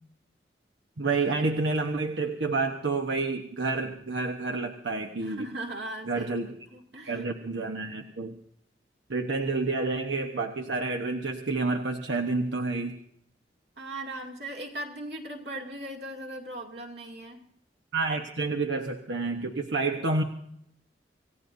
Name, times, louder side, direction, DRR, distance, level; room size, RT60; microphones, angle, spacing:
voice 1, 1.0-5.5 6.1-6.5 7.1-8.3 9.1-12.9 17.9-20.2, right 3 dB, 90° right, 3 dB, 1.0 m, -29 dB
voice 2, 5.2-7.2 13.8-17.4, right 1 dB, 70° right, 2 dB, 2.5 m, -39 dB
27.0 x 16.5 x 2.6 m, 0.71 s
head